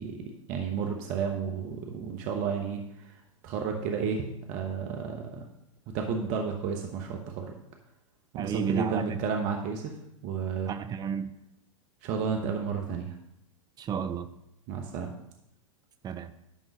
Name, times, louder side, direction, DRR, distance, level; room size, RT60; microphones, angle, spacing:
voice 1, 0.0-3.1 3.4-5.4 5.9-7.5 8.3-9.9 10.2-10.7 12.0-13.1 14.7-15.2, right 6 dB, 45° right, 1.1 m, -32 dB
voice 2, 8.4-9.1 10.7-11.3 13.8-14.3 16.0-16.3, right 7 dB, 25° right, 0.6 m, -31 dB
11.0 x 3.8 x 6.3 m
hypercardioid pair, 105°, 17 cm